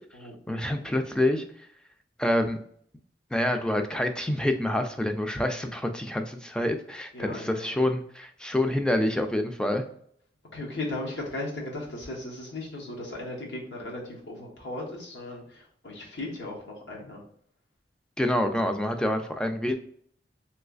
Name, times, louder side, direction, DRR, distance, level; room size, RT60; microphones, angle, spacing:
voice 1, 0.5-1.4 2.2-2.6 3.3-9.8 18.2-19.7, left 1 dB, 5° left, 6 dB, 0.3 m, -27 dB
voice 2, 7.1-7.8 10.5-17.2, left 2 dB, 80° left, -2 dB, 1.2 m, -37 dB
3.1 x 3.0 x 2.4 m, 0.63 s
head